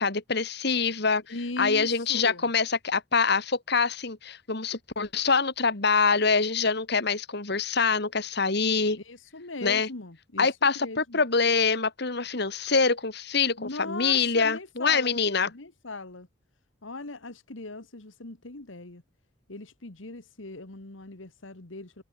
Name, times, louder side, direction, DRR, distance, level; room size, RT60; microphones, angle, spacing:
voice 1, 0.0-1.2 1.6-9.0 9.6-9.9 10.4-15.5, left 4 dB, 55° left, 2.1 m, -25 dB
voice 2, 1.3-2.5 8.9-10.5 10.8-11.2 13.6-16.3 16.8-19.0 19.5-22.0, left 2 dB, 75° left, 1.9 m, -39 dB
head